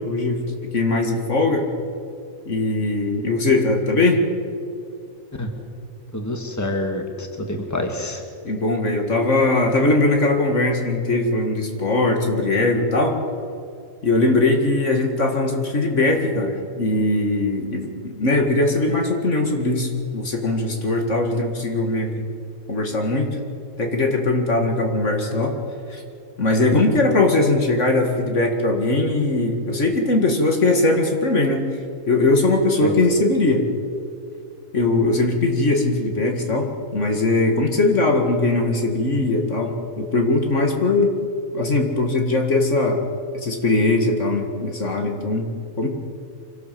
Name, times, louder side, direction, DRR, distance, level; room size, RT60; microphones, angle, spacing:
voice 1, 0.1-0.4 0.7-1.7 2.5-4.2 8.4-13.2 14.0-22.2 22.7-23.3 23.8-25.6 25.9-26.0 26.4-31.6 32.1-33.7 34.7-41.1 41.5-43.0 43.3-45.5 45.8-45.9, left 2 dB, 60° left, 3 dB, 2.4 m, -20 dB
voice 2, 6.1-8.2 32.8-33.0, left 1 dB, 10° left, 3 dB, 2.0 m, -27 dB
25.5 x 18.0 x 7.7 m, 2.4 s
omnidirectional pair, 1.4 m